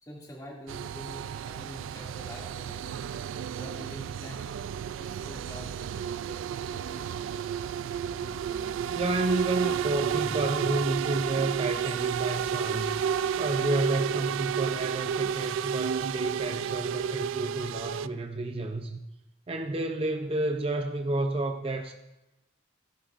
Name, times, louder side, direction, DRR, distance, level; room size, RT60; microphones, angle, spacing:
voice 1, 0.0-3.0 3.5-6.4 6.7-7.1, equal, 20° left, -4 dB, 2.3 m, -45 dB
sound 1, 0.7-18.1, right 8 dB, 85° right, 0.3 m, -32 dB
voice 2, 8.1-13.0 13.4-19.0 19.5-21.9, right 2 dB, 30° right, 4 dB, 0.5 m, -31 dB
16.0 x 11.0 x 2.5 m, 0.98 s
head